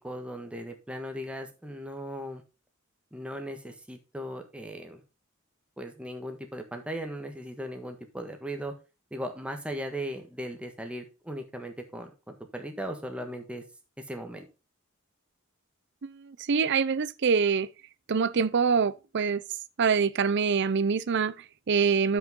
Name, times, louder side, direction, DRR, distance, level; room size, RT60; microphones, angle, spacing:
voice 1, 0.0-2.4 3.1-5.0 5.8-8.7 9.1-13.6 14.1-14.5, equal, 5° right, 1.4 m, -38 dB
voice 2, 16.0-17.7 18.1-19.4 19.8-22.2, right 5 dB, 60° right, 0.5 m, -25 dB
10.0 x 6.2 x 3.7 m
head